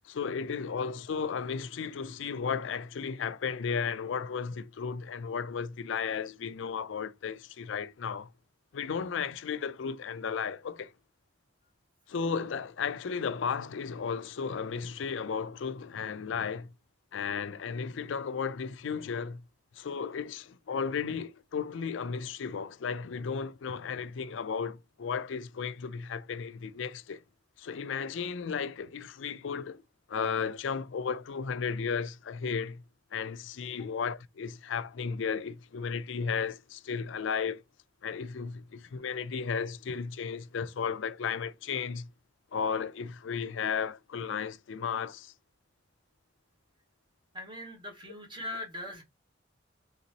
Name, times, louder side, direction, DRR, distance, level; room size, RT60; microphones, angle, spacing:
voice 1, 0.0-8.3 8.7-10.9 12.1-16.7 17.1-19.4 19.8-27.2 27.6-29.8 30.1-32.8 33.1-37.6 38.0-42.1 42.5-45.3, left 6 dB, 75° left, 0.4 m, -34 dB
voice 2, 47.3-49.0, left 1 dB, 25° right, 1.2 m, -40 dB
4.0 x 3.5 x 2.9 m
head